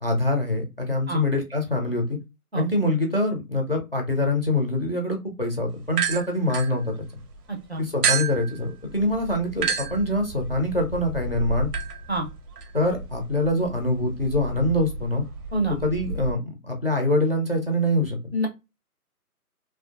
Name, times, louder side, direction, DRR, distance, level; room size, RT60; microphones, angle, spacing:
voice 1, 0.0-2.2 2.5-6.9 7.8-11.7 12.7-15.2 15.8-18.2, left 1 dB, 40° left, 2 dB, 0.5 m, -24 dB
sound 1, 5.9-7.4 8.0-16.3, right 5 dB, 85° right, 0.7 m, -31 dB
voice 2, 7.5-7.8 12.1-12.3 15.5-15.8 18.3-18.5, right 1 dB, 45° right, 3 dB, 0.5 m, -26 dB
2.5 x 2.2 x 2.4 m, 0.25 s
hypercardioid pair, 175°, 46 cm